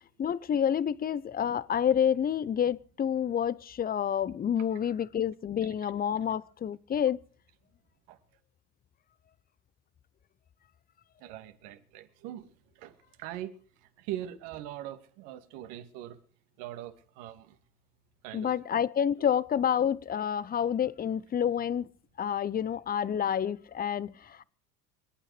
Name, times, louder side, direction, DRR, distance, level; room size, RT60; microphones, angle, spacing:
voice 1, 0.2-7.2 18.3-21.9 22.2-24.4, left 8 dB, 20° left, 0.7 m, -28 dB
voice 2, 11.2-16.2 16.6-17.6 18.2-18.5, right 12 dB, 60° right, 2.4 m, -42 dB
27.5 x 9.2 x 4.9 m
hypercardioid pair, 100°, 45 cm